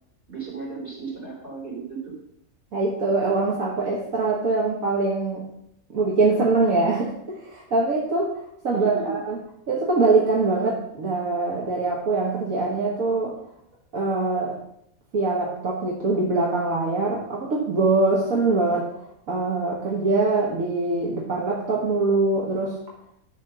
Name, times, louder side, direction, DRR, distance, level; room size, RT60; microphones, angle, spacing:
voice 1, 0.3-2.1 8.7-9.2, right 5 dB, 40° right, -5 dB, 3.8 m, -34 dB
voice 2, 2.7-5.4 5.9-9.4 9.7-13.3 13.9-14.5 15.1-22.7, right 3 dB, 75° right, -3 dB, 1.8 m, -23 dB
11.0 x 3.8 x 6.7 m, 0.74 s
omnidirectional pair, 1.5 m